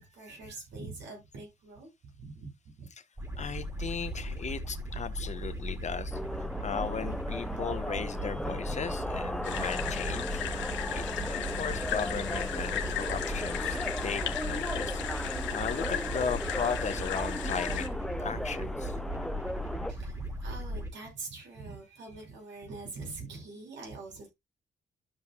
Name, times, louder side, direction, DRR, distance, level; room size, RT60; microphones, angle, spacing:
voice 1, 0.0-2.5 2.8-2.9 19.9-24.3, right 3 dB, 80° right, 5.9 m, -44 dB
sound 1, 3.2-20.9, equal, 15° right, 2.7 m, -37 dB
voice 2, 3.4-6.2 6.6-10.4 10.9-15.0 15.5-17.9 18.2-19.0, left 6 dB, 40° left, 1.2 m, -37 dB
sound 2, 6.1-19.9, left 1 dB, 5° left, 0.6 m, -37 dB
sound 3, 9.4-17.9, left 10 dB, 90° left, 1.3 m, -36 dB
13.0 x 5.4 x 2.4 m
cardioid pair, 90°, 19 cm